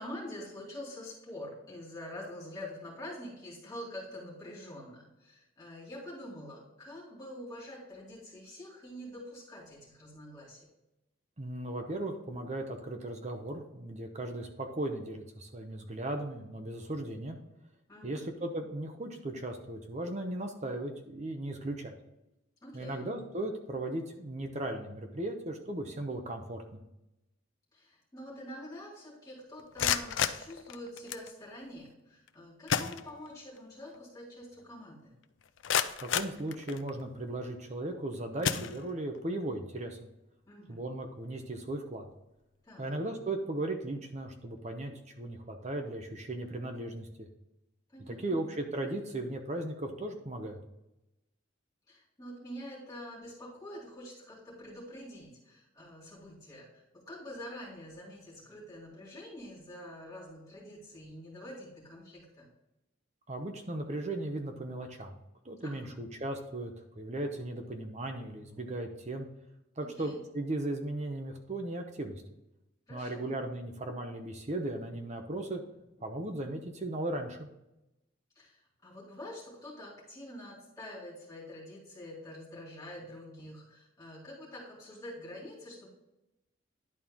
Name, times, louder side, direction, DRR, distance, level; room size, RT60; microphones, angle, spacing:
voice 1, 0.0-10.7 17.9-18.3 22.6-23.0 27.7-35.1 40.5-40.8 42.6-43.0 47.9-48.4 51.9-62.5 65.6-65.9 68.5-68.6 69.8-70.2 72.9-73.3 76.0-76.1 78.3-85.9, left 1 dB, 15° left, -7 dB, 2.9 m, -46 dB
voice 2, 11.4-17.4 18.0-21.9 22.7-26.8 36.0-40.1 40.7-42.1 42.8-47.3 48.1-50.6 63.3-65.2 65.4-69.3 69.8-72.2 72.9-75.6 76.0-77.5, right 1 dB, 35° right, 5 dB, 0.8 m, -37 dB
sound 1, 29.6-31.3 32.3-32.4 32.7-33.6 33.9-34.0 34.6-34.7 35.2-37.1 37.7-38.0 38.4-39.2, left 8 dB, 65° left, 0.5 m, -33 dB
11.0 x 4.3 x 3.7 m, 0.91 s
head